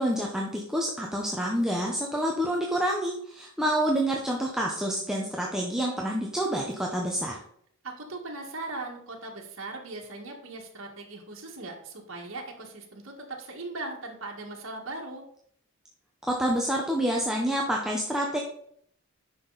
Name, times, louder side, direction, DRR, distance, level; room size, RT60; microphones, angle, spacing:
voice 1, 0.0-7.4 16.2-18.4, equal, 5° right, -1 dB, 0.8 m, -28 dB
voice 2, 7.8-15.2, right 2 dB, 60° right, -1 dB, 1.9 m, -39 dB
10.0 x 6.1 x 4.1 m, 0.68 s
head